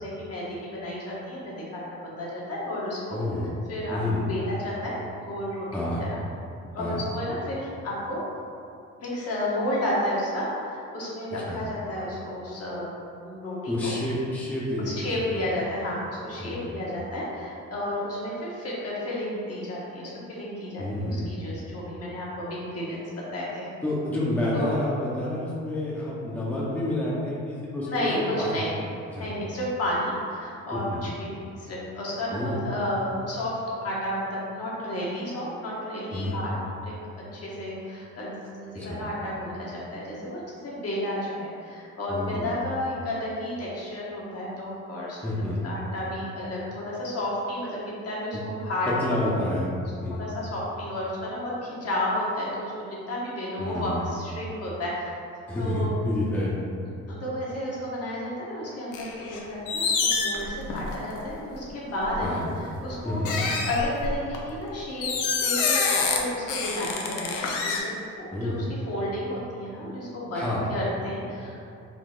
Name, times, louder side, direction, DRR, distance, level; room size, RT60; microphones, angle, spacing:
voice 1, 0.0-3.2 3.7-5.7 6.1-6.2 6.7-8.2 9.0-12.9 13.2-13.9 15.0-23.0 23.3-23.7 24.5-24.7 27.9-28.8 29.2-36.6 36.8-36.9 37.3-38.3 38.6-45.2 45.6-47.8 48.0-48.9 50.1-55.2 55.5-55.9 57.1-63.2 63.6-65.1 65.4-67.9 68.2-71.6, left 1 dB, 55° left, -6 dB, 1.1 m, -32 dB
voice 2, 3.1-3.5 3.9-4.2 5.7-6.0 6.8-7.0 11.5-11.6 13.7-15.3 16.4-16.7 20.8-21.2 23.8-28.1 28.4-28.6 29.1-29.3 30.7-31.0 32.3-32.6 36.1-36.3 38.8-39.0 42.1-42.4 45.2-45.6 48.3-48.4 48.9-49.7 50.0-50.2 53.6-54.0 55.5-56.5 62.2-62.5 63.0-63.4 68.3-68.6 70.3-70.7, left 1 dB, 5° left, -7 dB, 0.7 m, -29 dB
sound 1, 58.9-59.4 59.7-61.2 62.0-62.2 63.2-64.4 65.0-66.2 66.5-67.8, left 4 dB, 85° left, 0.5 m, -26 dB
3.8 x 2.0 x 3.7 m, 2.5 s
cardioid pair, 90°, 30 cm